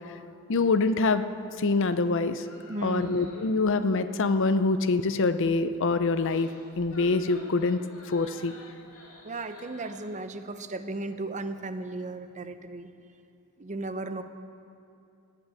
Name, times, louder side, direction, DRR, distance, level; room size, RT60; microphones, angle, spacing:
voice 1, 0.5-1.2 1.6-2.4 2.8-6.5 6.8-7.8 8.1-8.6, left 3 dB, 60° left, 11 dB, 0.6 m, -25 dB
sound 1, 2.4-3.7 6.0-10.0, left 1 dB, 85° left, 4.1 m, -50 dB
voice 2, 2.7-3.1 9.2-12.9 13.6-14.2, right 2 dB, 35° right, 9 dB, 0.7 m, -35 dB
18.5 x 6.2 x 8.5 m, 2.6 s
head